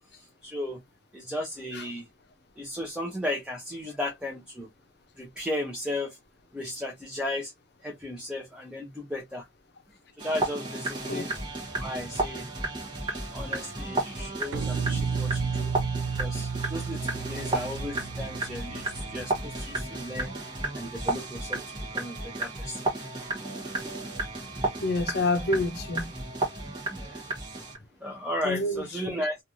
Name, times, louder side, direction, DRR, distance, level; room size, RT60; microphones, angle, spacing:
voice 1, 0.4-0.8 1.1-2.1 2.6-4.7 5.2-6.2 6.5-7.5 7.8-9.4 10.2-11.3 11.8-12.5 13.3-15.7 16.2-20.3 20.7-21.6 21.9-22.8 26.9-27.3 28.0-29.4, left 1 dB, 5° right, 0.6 m, -35 dB
sound 1, 10.2-27.8, right 2 dB, 25° right, 0.9 m, -33 dB
sound 2, 14.5-19.8, right 5 dB, 70° right, 0.4 m, -32 dB
voice 2, 24.8-26.1 28.4-29.2, left 2 dB, 55° left, 0.6 m, -28 dB
3.2 x 2.4 x 2.6 m
head